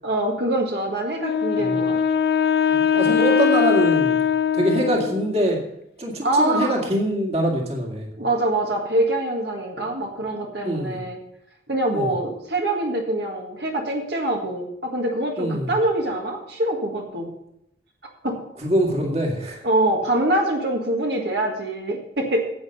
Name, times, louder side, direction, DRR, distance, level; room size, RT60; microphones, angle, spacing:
voice 1, 0.0-2.0 6.2-6.7 8.2-11.2 11.7-17.3 18.2-18.4 19.6-22.4, right 1 dB, 65° right, 1 dB, 1.8 m, -24 dB
Wind instrument woodwind instrument, 1.2-5.4, left 7 dB, 55° left, 0.6 m, -21 dB
voice 2, 2.7-4.2 4.5-5.6 6.0-8.1 10.6-11.0 11.9-12.1 15.4-15.7 18.6-19.6, right 1 dB, 35° right, 0 dB, 2.0 m, -24 dB
10.5 x 8.4 x 5.5 m, 0.77 s
head